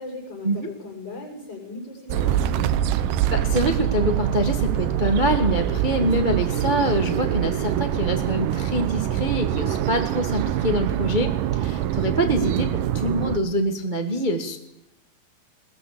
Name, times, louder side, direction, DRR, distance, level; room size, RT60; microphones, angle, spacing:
voice 1, 0.0-2.9, left 2 dB, 30° left, -2 dB, 6.7 m, -37 dB
sound 1, 2.1-13.4, right 11 dB, 70° right, 2.4 m, -24 dB
voice 2, 3.3-14.6, right 1 dB, 50° right, 4 dB, 0.5 m, -25 dB
21.0 x 18.0 x 8.6 m, 0.83 s
omnidirectional pair, 4.3 m